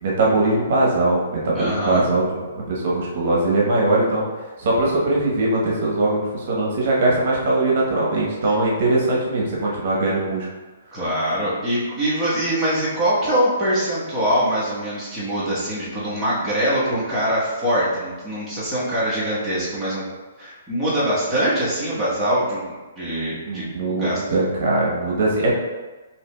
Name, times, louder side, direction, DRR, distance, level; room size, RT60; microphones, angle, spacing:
voice 1, 0.0-4.3 4.6-10.5 23.5-25.5, right 2 dB, 55° right, -3 dB, 1.0 m, -21 dB
voice 2, 1.5-2.1 8.4-8.5 10.9-20.0 20.4-22.6 23.0-24.2, equal, 5° right, -11 dB, 1.1 m, -23 dB
4.5 x 2.9 x 2.3 m, 1.3 s
hypercardioid pair, 150°, 0 cm